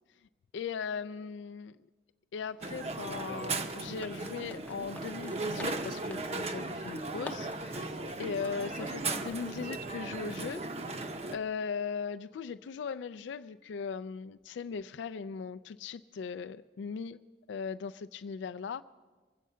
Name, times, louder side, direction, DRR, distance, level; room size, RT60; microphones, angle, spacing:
voice 1, 0.5-1.8 2.3-10.6 10.9-11.0 11.3-17.2 17.5-18.8, left 6 dB, 75° left, 10 dB, 0.3 m, -38 dB
sound 1, 2.3-10.1, left 2 dB, 10° left, 0.5 m, -51 dB
Crowd, 2.6-11.4, right 3 dB, 35° right, 0.7 m, -37 dB
23.5 x 8.3 x 5.6 m, 1.4 s
head